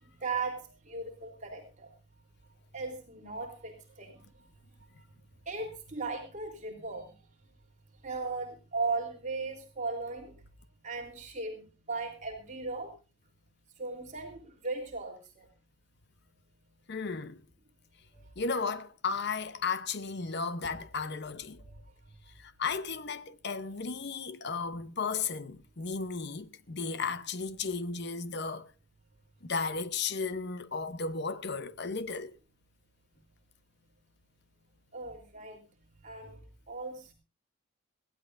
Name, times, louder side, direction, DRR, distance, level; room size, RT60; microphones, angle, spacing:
voice 1, 0.0-1.9 2.7-4.2 5.4-7.1 8.0-10.3 10.8-12.9 13.8-15.5 18.1-18.2 21.5-21.8 34.9-35.6 36.0-36.4 36.7-37.1, right 3 dB, 35° right, 3.4 m, -37 dB
voice 2, 16.9-17.4 18.4-21.6 22.4-28.7 29.4-32.4, left 4 dB, 55° left, 0.8 m, -34 dB
21.0 x 15.0 x 2.6 m
head